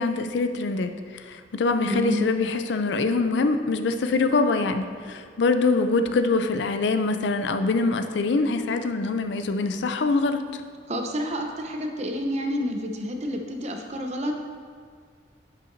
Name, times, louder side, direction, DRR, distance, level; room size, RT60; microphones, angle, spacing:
voice 1, 0.0-10.6, left 3 dB, 75° left, 8 dB, 0.4 m, -24 dB
voice 2, 1.8-2.3 10.9-14.4, equal, 40° right, 3 dB, 0.7 m, -29 dB
10.5 x 5.7 x 2.6 m, 2.1 s
head